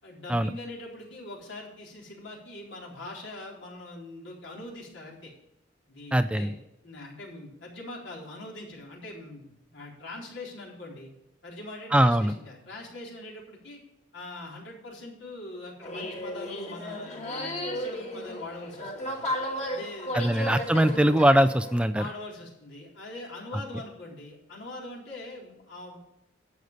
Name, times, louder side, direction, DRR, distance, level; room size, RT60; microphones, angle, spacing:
voice 1, 0.0-5.3 5.9-6.6 6.8-11.1 11.4-13.8 14.1-19.3 19.7-20.3 21.9-26.0, left 2 dB, 75° left, -2 dB, 4.0 m, -42 dB
voice 2, 6.1-6.5 11.9-12.3 20.1-22.0, right 1 dB, 5° right, 12 dB, 0.4 m, -21 dB
sound 1, 15.8-21.9, left 1 dB, 35° left, 2.2 m, -34 dB
11.5 x 8.2 x 5.3 m, 0.89 s
head